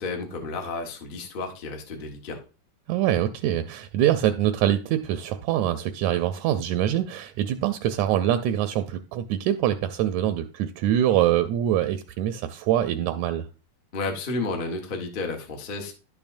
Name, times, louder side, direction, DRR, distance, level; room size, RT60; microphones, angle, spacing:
voice 1, 0.0-2.4 13.9-15.9, left 3 dB, 80° left, 0.4 m, -32 dB
voice 2, 2.9-13.5, right 11 dB, 80° right, 1.8 m, -24 dB
11.0 x 7.1 x 2.6 m
omnidirectional pair, 3.4 m